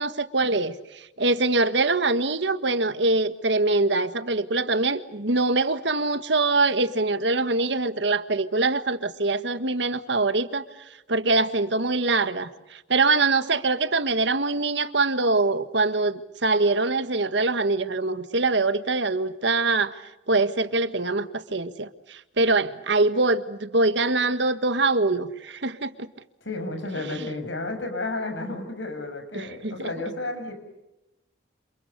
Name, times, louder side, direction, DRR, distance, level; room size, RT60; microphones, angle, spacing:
voice 1, 0.0-10.6 11.1-20.0 20.3-26.1 29.3-29.9, right 3 dB, 75° right, 11 dB, 1.6 m, -24 dB
voice 2, 26.4-30.5, left 2 dB, 90° left, 7 dB, 6.9 m, -32 dB
29.0 x 27.5 x 6.8 m, 0.93 s
head